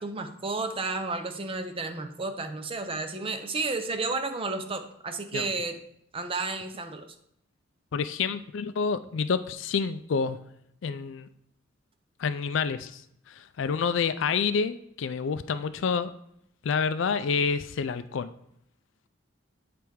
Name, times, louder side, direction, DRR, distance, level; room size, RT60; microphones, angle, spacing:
voice 1, 0.0-5.8 6.1-7.1, right 3 dB, 30° right, 7 dB, 0.6 m, -32 dB
voice 2, 7.9-10.4 10.8-11.3 12.2-13.0 13.3-16.1 16.6-18.3, left 5 dB, 70° left, 13 dB, 0.4 m, -28 dB
8.6 x 3.4 x 4.7 m, 0.73 s
head